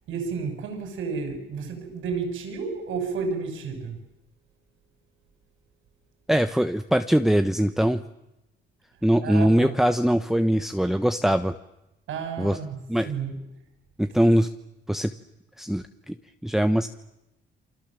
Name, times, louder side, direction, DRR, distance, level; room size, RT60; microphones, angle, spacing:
voice 1, 0.1-4.0 9.2-9.8 12.1-12.8 13.0-13.4, right 5 dB, 80° right, 6.8 m, -31 dB
voice 2, 6.3-8.0 9.0-11.6 12.4-12.6 12.9-13.1 14.0-14.5 14.9-15.1 15.6-16.2 16.4-16.9, equal, ahead, 1.1 m, -22 dB
29.0 x 25.0 x 7.6 m
cardioid pair, 90°, 20 cm